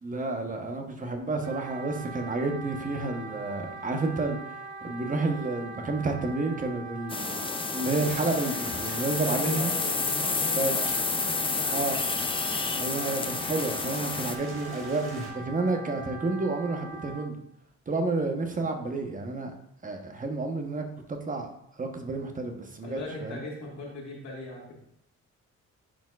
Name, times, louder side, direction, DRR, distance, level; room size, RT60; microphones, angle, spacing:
voice 1, 0.0-4.4 4.8-7.5 7.7-9.7 10.6-10.7 11.7-12.0 12.8-17.3 17.9-19.5 19.8-21.5 21.8-23.4, right 3 dB, 25° right, 4 dB, 1.0 m, -30 dB
Wind instrument woodwind instrument, 1.4-17.3, right 3 dB, 90° right, 0.7 m, -42 dB
sound 1, 7.1-14.4, left 4 dB, 20° left, 0.4 m, -30 dB
Rain, 8.0-15.3, right 2 dB, 45° right, 1.8 m, -43 dB
voice 2, 9.3-12.1 22.8-24.7, left 2 dB, 70° left, -5 dB, 1.9 m, -39 dB
10.0 x 4.5 x 2.4 m, 0.76 s
cardioid pair, 90°, 30 cm